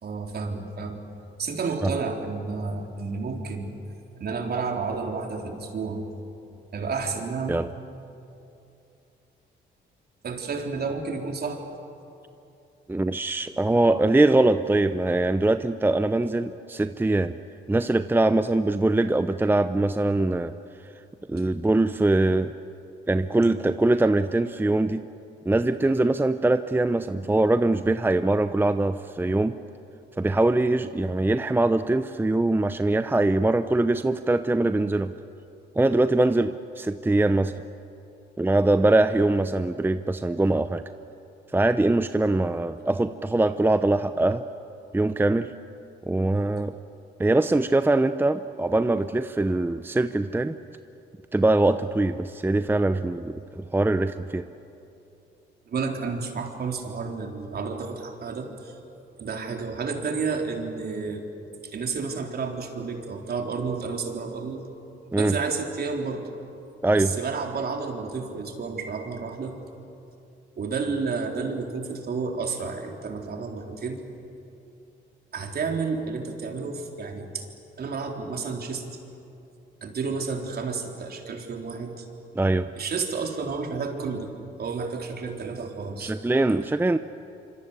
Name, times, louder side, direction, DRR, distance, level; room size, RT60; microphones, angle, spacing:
voice 1, 0.0-1.0 1.4-3.7 4.2-6.1 6.7-7.5 10.2-11.6 55.7-58.8 59.2-61.2 61.7-64.6 65.1-66.3 66.9-69.6 70.6-74.0 75.3-77.5 77.8-78.9 79.8-82.1 82.7-84.3 84.6-86.2, right 4 dB, 50° right, 3 dB, 3.7 m, -31 dB
voice 2, 12.9-17.4 17.7-20.5 21.3-22.5 23.1-25.0 25.5-29.6 30.2-35.1 35.8-37.5 38.4-40.8 41.5-44.5 44.9-45.5 46.1-46.7 47.2-50.6 51.3-54.4 65.1-65.4 66.8-67.1 82.3-82.7 86.0-87.0, right 2 dB, 10° right, 11 dB, 0.7 m, -22 dB
26.5 x 25.0 x 8.3 m, 2.7 s
cardioid pair, 90°, 20 cm